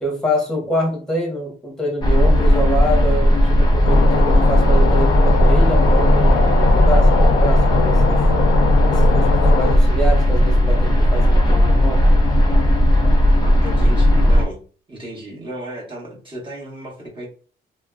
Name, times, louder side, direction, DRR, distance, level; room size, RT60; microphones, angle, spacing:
voice 1, 0.0-8.3 8.9-12.0, equal, 5° left, -2 dB, 1.2 m, -26 dB
sound 1, 2.0-14.4, equal, 20° left, 1.0 m, -15 dB
sound 2, 3.8-9.7, left 6 dB, 80° left, 0.5 m, -22 dB
voice 2, 13.4-14.6 14.9-17.3, right 1 dB, 25° right, -4 dB, 1.3 m, -34 dB
3.1 x 2.0 x 2.3 m, 0.40 s
cardioid pair, 90°, 20 cm